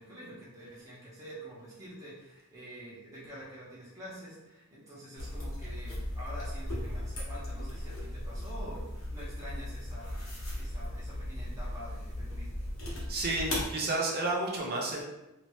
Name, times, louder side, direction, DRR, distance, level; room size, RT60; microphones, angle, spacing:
voice 1, 0.0-10.2 10.5-12.5, equal, 15° right, -8 dB, 1.0 m, -47 dB
sound 1, 5.2-13.7, left 1 dB, 75° left, 1.1 m, -37 dB
voice 2, 12.9-15.0, right 2 dB, 45° right, -2 dB, 0.8 m, -31 dB
3.0 x 2.9 x 3.0 m, 0.97 s
head